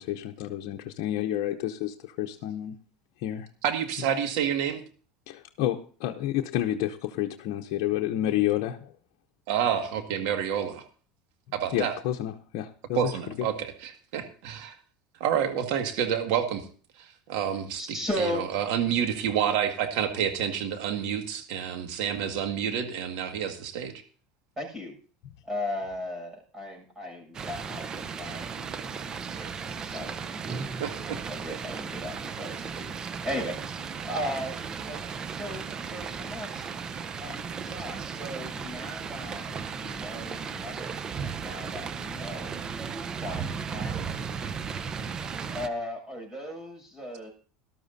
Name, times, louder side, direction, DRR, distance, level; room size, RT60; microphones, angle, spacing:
voice 1, 0.0-2.7 3.2-3.5 5.3-8.9 11.7-13.1, left 13 dB, 70° left, 2 dB, 0.8 m, -30 dB
voice 2, 3.6-4.8 9.5-10.8 11.5-11.9 13.0-14.7 15.2-16.7 17.0-17.8 18.2-23.9 30.8-31.2, right 8 dB, 70° right, 6 dB, 1.9 m, -28 dB
voice 3, 17.8-18.4 24.6-24.9 25.4-30.8 31.1-32.9 33.2-34.6 34.9-36.7 37.2-42.5 43.1-44.2 45.5-47.3, left 1 dB, 20° right, 1 dB, 6.7 m, -37 dB
sound 1, 27.3-45.7, right 6 dB, 35° right, 0.8 m, -35 dB
18.5 x 12.5 x 2.7 m, 0.40 s
supercardioid pair, 105°, 2 cm